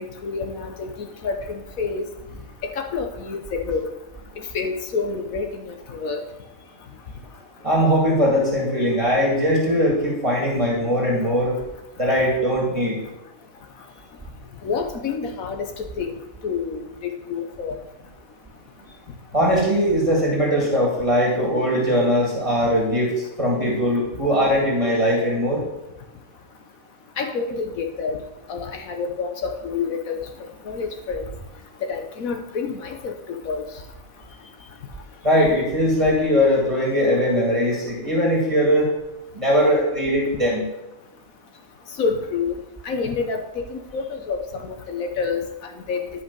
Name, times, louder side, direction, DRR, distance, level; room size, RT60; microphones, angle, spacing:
voice 1, 0.0-2.1 2.6-3.9 4.5-6.2 14.6-17.8 27.2-28.2 28.5-30.3 30.6-31.3 31.8-33.6 42.0-42.5 42.8-46.1, left 5 dB, 80° left, 5 dB, 1.4 m, -28 dB
voice 2, 7.6-11.6 12.0-13.0 19.3-25.6 35.2-38.9 39.3-40.6, equal, 25° right, -4 dB, 2.1 m, -20 dB
11.5 x 5.6 x 5.3 m, 0.95 s
omnidirectional pair, 1.4 m